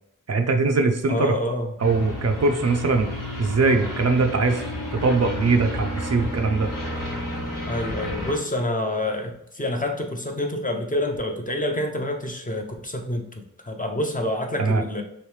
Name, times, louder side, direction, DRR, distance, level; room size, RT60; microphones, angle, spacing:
voice 1, 0.3-1.3 1.8-3.1 3.4-4.6 4.9-6.7 14.6-14.8, right 3 dB, 55° right, 6 dB, 0.4 m, -21 dB
voice 2, 1.1-1.7 7.7-15.0, left 1 dB, 25° left, 3 dB, 0.5 m, -27 dB
sound 1, 1.8-8.4, left 1 dB, 90° left, 1.2 m, -31 dB
3.1 x 3.0 x 3.2 m, 0.78 s
wide cardioid pair, 75°, 32 cm